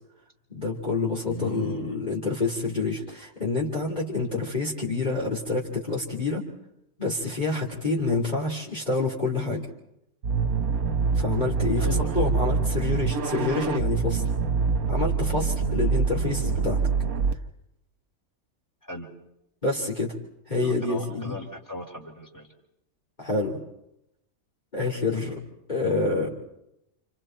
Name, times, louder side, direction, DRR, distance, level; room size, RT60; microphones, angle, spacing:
voice 1, 0.5-6.5 7.0-9.7 11.1-14.2 14.9-16.8 19.6-20.1 20.5-21.4 23.2-23.6 24.7-25.4 25.7-26.3, left 3 dB, 30° left, -3 dB, 3.2 m, -27 dB
voice 2, 1.2-1.9 4.2-4.4 11.8-12.2 18.8-19.1 20.6-22.5, equal, 10° left, 2 dB, 3.7 m, -37 dB
sound 1, 10.2-17.3, right 5 dB, 75° right, 1.6 m, -25 dB
30.0 x 28.0 x 4.5 m, 0.83 s
omnidirectional pair, 1.5 m